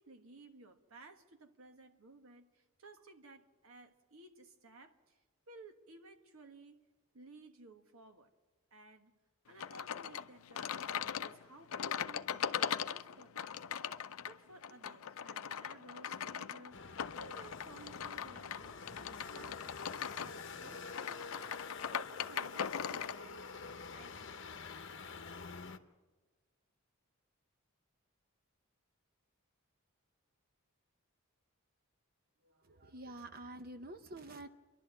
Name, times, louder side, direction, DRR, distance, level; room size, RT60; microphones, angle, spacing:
voice 1, 0.0-5.2 5.5-6.9 7.1-8.3 8.7-9.1 9.5-19.8 20.2-23.4 23.7-24.5 32.4-32.9, right 2 dB, 75° right, 6 dB, 1.4 m, -57 dB
sound 1, 9.6-23.2, left 8 dB, 75° left, 0.5 m, -40 dB
sound 2, 16.7-25.8, left 4 dB, 55° left, 0.8 m, -48 dB
voice 2, 32.6-34.5, right 2 dB, 45° right, 9 dB, 0.7 m, -48 dB
28.5 x 11.5 x 7.8 m, 1.3 s
head